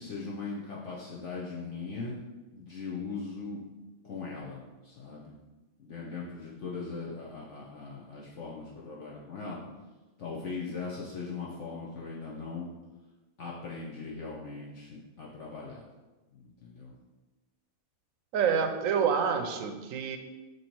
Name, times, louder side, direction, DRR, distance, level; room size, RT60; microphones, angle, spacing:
voice 1, 0.0-2.2 2.5-3.6 4.0-5.3 5.8-9.6 10.2-12.7 13.4-15.8 16.3-16.9, left 4 dB, 60° left, -5 dB, 1.1 m, -39 dB
voice 2, 18.3-20.2, right 7 dB, 70° right, 6 dB, 1.0 m, -27 dB
7.8 x 3.1 x 4.4 m, 1.2 s
omnidirectional pair, 1.5 m